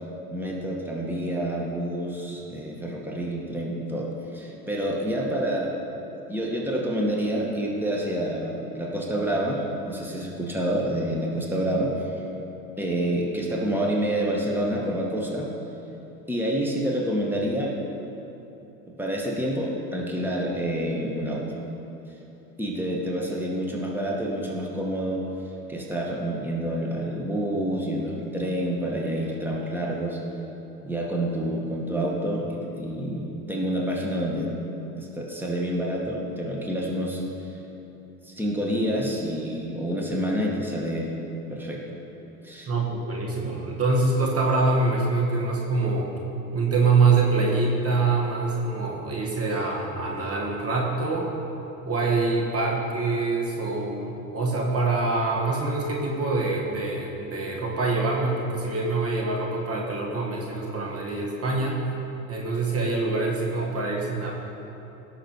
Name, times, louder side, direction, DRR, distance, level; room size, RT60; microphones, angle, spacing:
voice 1, 0.3-5.7 6.3-12.2 12.8-15.5 16.3-17.8 18.9-21.5 22.6-25.3 25.7-30.2 30.8-34.5 35.0-37.2 38.2-41.1 41.5-41.8 42.4-42.7, right 1 dB, 5° right, -2 dB, 2.0 m, -28 dB
voice 2, 42.7-46.1 46.5-51.3 51.9-61.8 62.3-64.3, right 3 dB, 30° right, -1 dB, 1.8 m, -25 dB
17.0 x 6.6 x 4.8 m, 3.0 s
hypercardioid pair, 75°, 43 cm